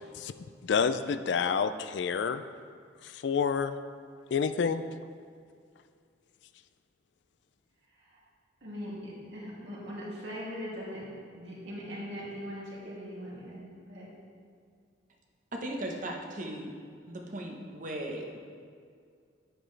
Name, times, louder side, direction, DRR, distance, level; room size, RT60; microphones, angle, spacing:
voice 1, 0.6-2.4 3.2-3.7 4.3-4.8, left 6 dB, 65° left, 11 dB, 0.3 m, -28 dB
voice 2, 8.6-11.0 11.4-13.6 13.9-14.1, equal, 65° right, -6 dB, 2.6 m, -40 dB
voice 3, 15.5-16.7 17.1-18.4, right 1 dB, 45° right, 1 dB, 1.0 m, -37 dB
10.0 x 8.7 x 3.3 m, 2.2 s
head